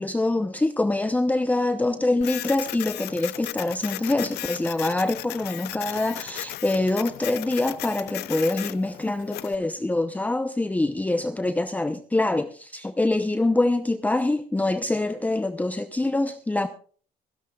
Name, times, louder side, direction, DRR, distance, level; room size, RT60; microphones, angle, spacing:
voice 1, 0.0-16.7, left 2 dB, 10° left, 0.7 m, -25 dB
Printer, 2.2-9.6, left 16 dB, 75° left, 0.5 m, -36 dB
25.0 x 11.0 x 2.4 m
cardioid pair, 110°, 17 cm